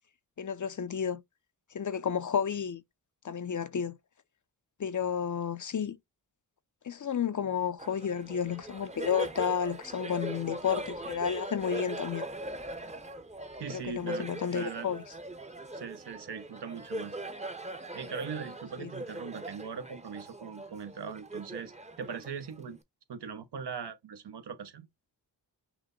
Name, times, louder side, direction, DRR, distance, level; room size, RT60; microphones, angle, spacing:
voice 1, 0.4-1.2 1.7-2.8 3.2-4.0 4.8-6.0 6.8-12.2 13.7-15.0 18.8-18.9, left 7 dB, 45° left, 0.6 m, -31 dB
Laughter, 7.8-22.8, right 1 dB, 15° right, 0.8 m, -41 dB
voice 2, 13.6-14.9 15.7-17.2 17.9-22.8 23.1-24.9, right 6 dB, 65° right, 1.0 m, -40 dB
6.1 x 2.1 x 3.8 m
cardioid pair, 50°, 43 cm